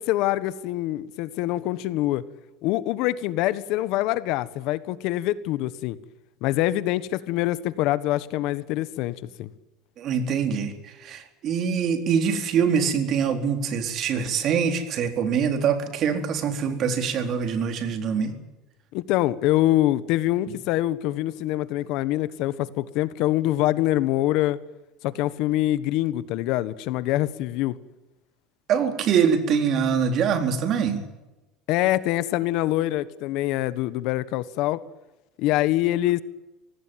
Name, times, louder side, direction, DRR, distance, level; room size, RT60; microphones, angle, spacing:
voice 1, 0.0-2.2 2.6-6.0 6.4-9.5 18.9-24.6 25.0-27.8 31.7-34.8 35.4-36.2, left 15 dB, 60° left, 15 dB, 1.3 m, -25 dB
voice 2, 10.0-10.7 11.0-18.3 28.7-31.0, right 7 dB, 40° right, 6 dB, 4.1 m, -24 dB
25.0 x 18.5 x 9.4 m, 1.0 s
cardioid pair, 145°, 0 cm